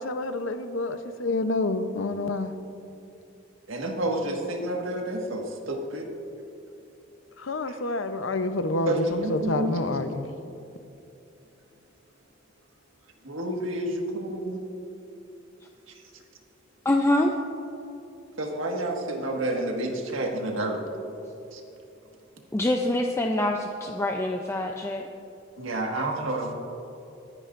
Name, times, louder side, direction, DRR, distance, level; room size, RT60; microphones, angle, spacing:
voice 1, 0.0-2.5 7.4-10.3, left 2 dB, 75° left, 9 dB, 0.7 m, -28 dB
voice 2, 3.7-6.1 8.8-9.9 13.2-14.6 18.4-20.8 21.5-21.6 25.6-26.5, right 1 dB, 90° right, 1 dB, 1.7 m, -29 dB
voice 3, 16.8-17.3 22.5-25.1, left 1 dB, 15° left, 2 dB, 0.5 m, -25 dB
24.0 x 9.9 x 2.6 m, 2.9 s
head